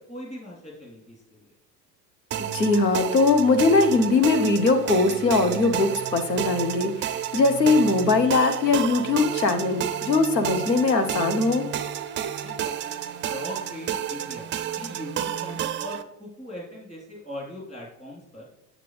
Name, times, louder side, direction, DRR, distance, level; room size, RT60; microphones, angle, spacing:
voice 1, 0.0-1.5 12.4-12.7 13.3-18.5, left 1 dB, 15° left, -4 dB, 3.6 m, -40 dB
sound 1, 2.3-16.0, right 10 dB, 25° right, 0.5 m, -31 dB
voice 2, 2.5-11.7, left 3 dB, 85° left, 8 dB, 1.0 m, -21 dB
9.2 x 7.6 x 3.3 m, 0.83 s
figure-of-eight pair, 70°, 49 cm